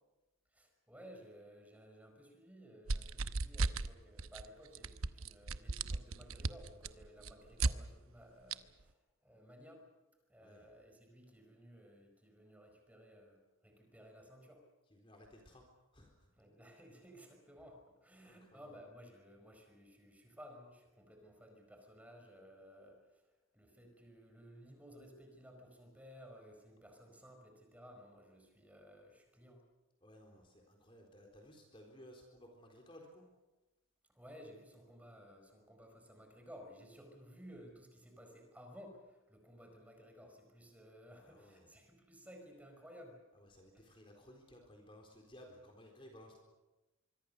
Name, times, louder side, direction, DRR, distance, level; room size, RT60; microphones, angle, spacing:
voice 1, 0.5-9.0 9.2-9.8 10.3-13.4 13.6-14.6 16.4-23.2 23.5-29.6 34.1-43.2 43.7-43.8, equal, 5° right, 4 dB, 4.7 m, -57 dB
sound 1, 2.9-3.9 4.2-4.5 4.8-7.7 8.5-8.6, right 3 dB, 85° right, 0.9 m, -35 dB
voice 2, 14.9-15.7 15.9-16.3 18.3-18.7 30.0-33.3 41.2-41.7 43.3-46.4, equal, 25° left, 2 dB, 3.9 m, -58 dB
25.5 x 24.0 x 6.7 m, 1.1 s
head